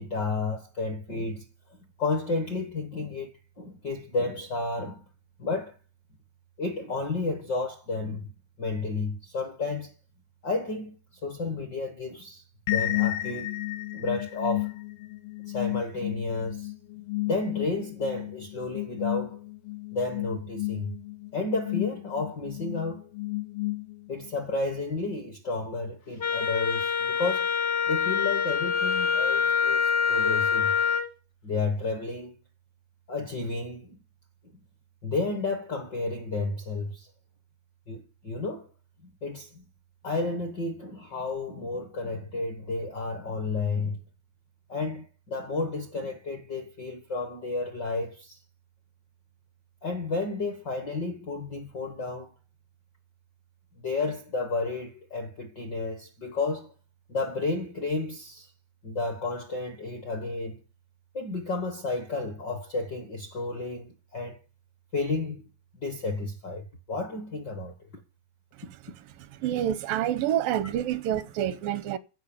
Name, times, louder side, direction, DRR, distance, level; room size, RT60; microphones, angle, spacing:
voice 1, 0.0-1.4 2.0-3.3 3.6-5.0 5.4-5.8 6.6-8.3 8.6-9.9 10.4-10.9 11.2-12.4 12.7-13.6 13.9-14.7 15.5-16.7 17.3-19.4 19.9-20.9 21.3-23.1 24.1-27.5 27.9-30.7 31.4-32.4 33.1-34.0 35.0-37.1 37.9-38.7 39.0-39.6 40.0-44.0 44.7-48.4 49.8-52.3 53.8-56.7 57.1-58.5 58.8-60.6 61.1-64.4 64.9-65.5 65.8-67.7, left 3 dB, 55° left, 1.2 m, -32 dB
sound 1, 12.7-24.3, left 17 dB, 85° left, 2.5 m, -33 dB
Wind instrument woodwind instrument, 26.2-31.1, left 6 dB, 70° left, 0.9 m, -25 dB
voice 2, 69.4-72.0, right 11 dB, 85° right, 2.4 m, -27 dB
14.5 x 5.3 x 7.1 m
omnidirectional pair, 4.0 m